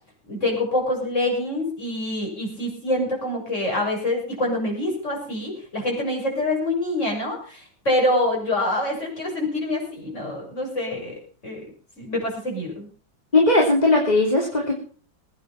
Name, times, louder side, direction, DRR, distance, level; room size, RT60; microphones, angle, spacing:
voice 1, 0.3-11.6 12.0-12.9, left 1 dB, 35° left, 0 dB, 7.4 m, -26 dB
voice 2, 13.3-14.8, left 2 dB, 20° left, -1 dB, 3.2 m, -18 dB
22.0 x 9.4 x 5.8 m, 0.41 s
omnidirectional pair, 2.2 m